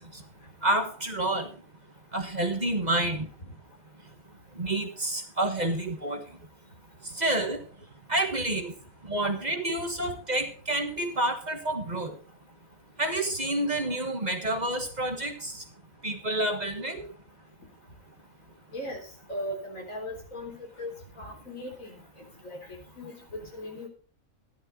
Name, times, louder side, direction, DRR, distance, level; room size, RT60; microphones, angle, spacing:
voice 1, 0.6-1.5 2.1-3.3 4.6-6.3 7.1-7.6 8.1-8.7 9.1-12.2 13.0-15.6 16.0-17.1, right 1 dB, 35° right, 5 dB, 1.6 m, -29 dB
voice 2, 3.0-3.5 10.0-10.1 18.7-22.0 22.4-23.9, left 1 dB, 75° left, 2 dB, 4.0 m, -39 dB
13.5 x 11.5 x 4.0 m, 0.39 s
omnidirectional pair, 1.4 m